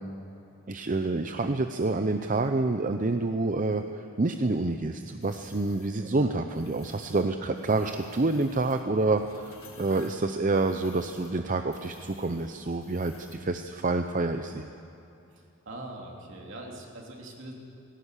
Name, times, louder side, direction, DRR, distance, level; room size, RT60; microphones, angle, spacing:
voice 1, 0.7-14.7, right 2 dB, 40° right, 7 dB, 0.6 m, -28 dB
Rocks Sliding, 5.2-5.9 6.5-7.2 7.5-13.5, left 3 dB, 80° left, 3.0 m, -53 dB
voice 2, 15.3-17.5, right 1 dB, 60° right, 0 dB, 3.3 m, -42 dB
18.5 x 17.5 x 8.3 m, 2.9 s
head